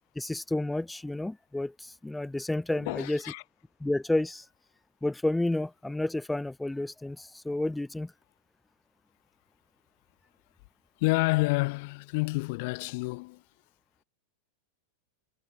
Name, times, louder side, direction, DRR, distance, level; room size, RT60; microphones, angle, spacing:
voice 1, 0.2-3.2 3.8-4.4 5.0-8.1, left 2 dB, 5° left, 0.7 m, -30 dB
voice 2, 2.8-3.4 11.0-13.4, left 26 dB, 50° left, 2.3 m, -29 dB
figure-of-eight pair, 90°, 0 cm